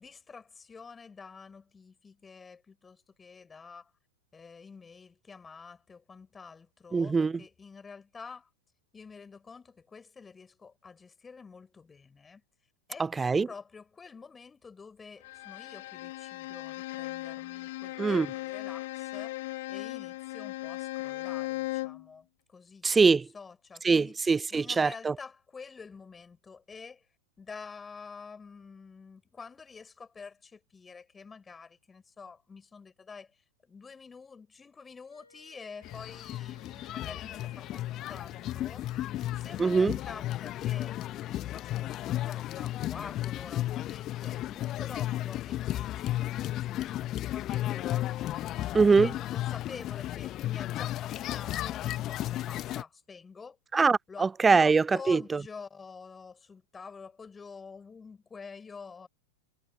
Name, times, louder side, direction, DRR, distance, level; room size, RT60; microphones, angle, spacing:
voice 1, 0.0-3.9 4.3-8.5 8.9-12.4 12.9-19.4 19.7-22.9 23.3-24.2 24.5-27.1 27.4-38.8 39.4-48.1 48.8-53.6 54.1-59.1, left 5 dB, 15° left, 6.1 m, -48 dB
voice 2, 6.9-7.4 13.2-13.5 18.0-18.3 22.8-23.3 23.8-25.1 39.6-39.9 48.7-49.1 53.7-55.4, right 4 dB, 15° right, 0.6 m, -23 dB
Bowed string instrument, 15.2-22.1, left 19 dB, 55° left, 2.5 m, -37 dB
Wind instrument woodwind instrument, 35.1-39.9, left 2 dB, 90° left, 6.9 m, -60 dB
sound 1, 35.8-52.8, left 14 dB, 35° left, 1.3 m, -34 dB
figure-of-eight pair, 90°, 0 cm